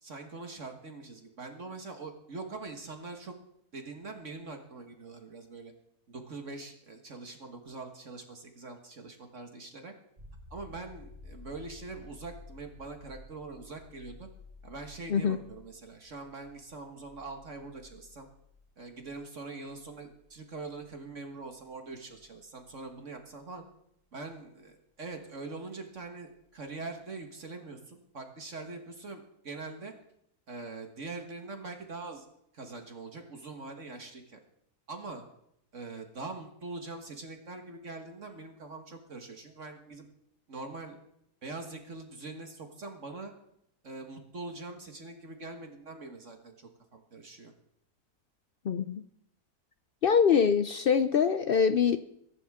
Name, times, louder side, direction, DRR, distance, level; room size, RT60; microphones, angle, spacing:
voice 1, 0.0-3.3 3.7-5.7 6.1-9.9 10.5-14.3 14.6-18.3 18.8-23.6 24.1-29.9 30.5-32.3 32.5-34.4 34.9-35.2 35.7-40.1 40.5-41.0 41.4-43.3 43.8-47.5, right 3 dB, 50° right, 4 dB, 1.8 m, -43 dB
sound 1, 10.2-23.7 26.4-26.5, left 3 dB, 35° right, 4.7 m, -54 dB
voice 2, 48.6-49.0 50.0-52.0, left 6 dB, 80° left, 10 dB, 0.5 m, -24 dB
23.0 x 11.0 x 3.6 m, 0.76 s
omnidirectional pair, 1.7 m